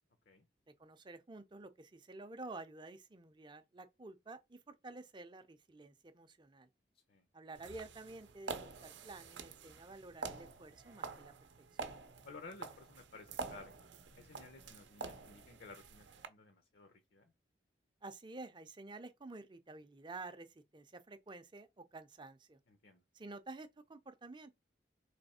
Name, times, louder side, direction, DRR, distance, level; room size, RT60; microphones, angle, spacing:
voice 1, 0.8-6.7 7.3-11.3 18.0-22.6 23.1-24.5, right 3 dB, 25° right, 0.5 m, -51 dB
sound 1, 7.5-16.3, right 4 dB, 75° right, 0.6 m, -47 dB
voice 2, 12.2-13.8 14.2-17.3 22.7-23.0, left 3 dB, 60° left, 0.7 m, -55 dB
3.4 x 3.1 x 4.2 m
head